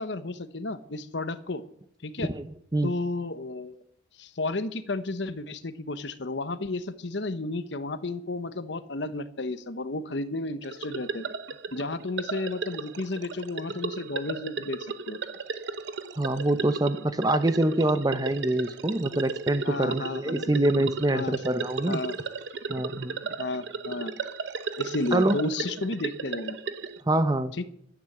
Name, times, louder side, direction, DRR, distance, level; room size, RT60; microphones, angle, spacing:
voice 1, 0.0-1.6 2.0-2.3 2.8-3.8 4.2-11.2 11.7-15.2 19.6-20.7 21.1-21.4 21.9-22.2 23.4-24.1 24.8-26.6 27.6-27.7, left 2 dB, 65° left, 13 dB, 1.0 m, -32 dB
sound 1, 10.6-27.0, right 4 dB, 65° right, 0.9 m, -35 dB
voice 2, 16.2-22.0 22.7-23.2 25.1-25.4 27.1-27.5, right 1 dB, 20° right, 12 dB, 0.7 m, -25 dB
12.0 x 9.9 x 7.9 m, 0.69 s
head